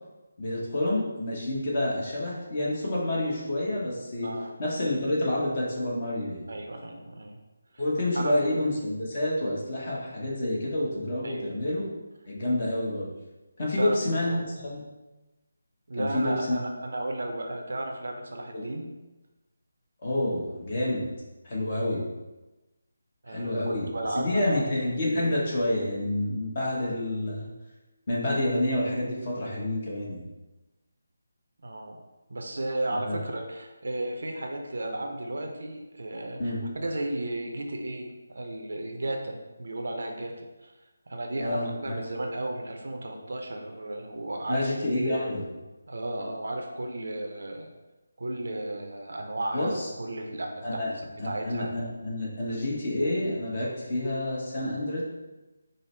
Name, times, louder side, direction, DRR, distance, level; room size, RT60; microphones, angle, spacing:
voice 1, 0.4-4.3 4.6-6.4 7.8-11.9 12.3-13.1 13.6-14.8 16.0-16.6 18.5-18.6 20.0-21.1 21.4-22.0 23.3-23.9 24.2-27.5 28.1-30.2 33.0-33.2 36.4-36.6 41.4-42.0 44.5-45.4 49.5-49.9 50.6-50.9 51.2-55.0, left 1 dB, 40° left, -4 dB, 1.1 m, -28 dB
voice 2, 4.2-4.5 6.5-7.4 7.7-7.8 8.1-8.6 11.2-11.4 13.6-14.4 15.9-18.9 23.2-24.7 31.6-32.0 32.3-40.7 41.1-45.2 45.9-47.7 48.2-51.7, right 1 dB, 65° right, 2 dB, 0.6 m, -34 dB
5.2 x 2.1 x 3.3 m, 1.1 s
figure-of-eight pair, 155°, 0 cm